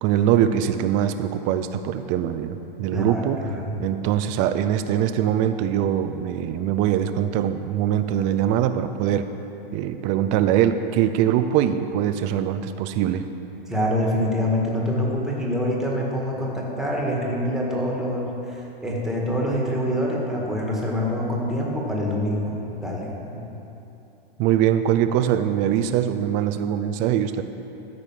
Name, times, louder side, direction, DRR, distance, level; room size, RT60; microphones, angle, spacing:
voice 1, 0.0-3.4 3.8-9.3 9.7-13.3 24.4-27.4, right 10 dB, 25° right, 9 dB, 0.4 m, -22 dB
voice 2, 2.9-3.2 3.5-3.7 13.7-23.4, equal, ahead, -3 dB, 1.7 m, -25 dB
13.5 x 5.0 x 7.3 m, 3.0 s
hypercardioid pair, 135°, 30 cm